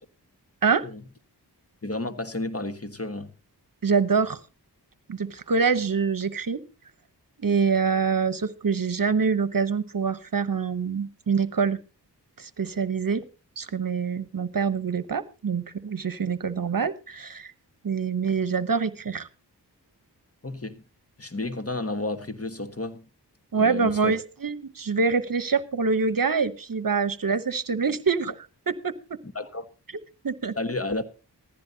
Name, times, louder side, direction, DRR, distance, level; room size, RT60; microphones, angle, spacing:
voice 1, 1.8-3.3 20.4-20.8 21.2-23.1 23.5-24.2 29.3-29.6 30.6-31.0, left 2 dB, 35° left, 1.5 m, -31 dB
voice 2, 3.8-4.4 5.1-6.6 7.4-11.8 12.4-13.2 13.6-17.5 17.8-19.3 23.5-29.2 30.2-30.5, right 5 dB, 55° right, 1.0 m, -25 dB
15.5 x 15.0 x 2.8 m
cardioid pair, 40°, 41 cm